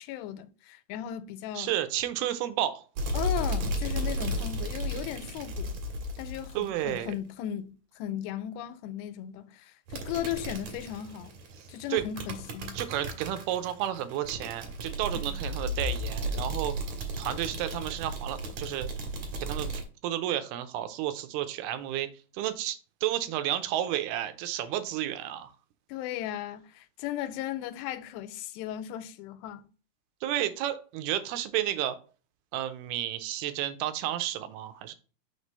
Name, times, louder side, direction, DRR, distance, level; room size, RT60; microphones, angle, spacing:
voice 1, 0.0-1.7 3.1-5.8 6.2-11.4 11.7-12.8 15.3-15.4 25.9-29.7, left 11 dB, 85° left, 2.6 m, -36 dB
voice 2, 1.6-2.8 6.6-7.1 11.6-11.7 11.9-12.0 12.7-16.7 17.2-18.9 19.4-25.5 30.2-32.0 32.5-34.9, right 12 dB, 80° right, 2.4 m, -32 dB
sound 1, 2.9-7.1 9.9-19.8, right 1 dB, 60° right, 2.1 m, -34 dB
5.8 x 3.2 x 5.3 m
omnidirectional pair, 4.7 m